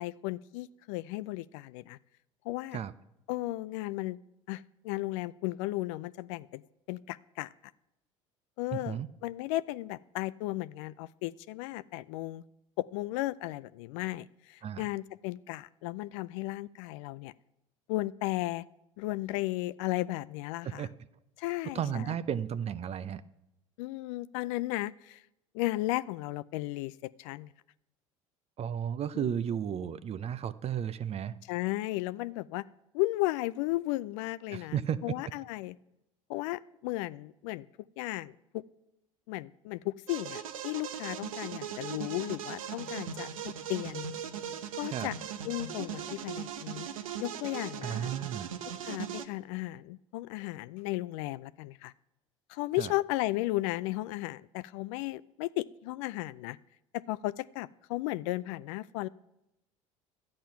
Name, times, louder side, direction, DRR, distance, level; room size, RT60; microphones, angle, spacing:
voice 1, 0.0-2.0 2.5-2.8 3.3-4.2 4.5-6.6 6.9-7.5 8.6-12.4 12.8-17.3 17.9-18.6 19.0-20.9 21.4-22.2 23.8-25.2 25.5-27.5 29.1-29.3 31.5-32.6 32.9-35.8 36.3-37.7 38.0-38.6 39.3-44.1 44.8-45.1 45.4-46.9 47.2-48.1 48.8-51.9 52.5-56.6 56.9-59.1, left 18 dB, 65° left, 17 dB, 0.4 m, -35 dB
voice 2, 21.7-23.2 28.6-31.3 34.5-35.1 44.9-45.1 47.8-48.5 52.8-52.9, right 9 dB, 35° right, 16 dB, 0.6 m, -33 dB
sound 1, 40.1-49.3, right 8 dB, 85° right, 0.7 m, -39 dB
12.0 x 8.7 x 5.7 m, 0.88 s
hypercardioid pair, 70°, 17 cm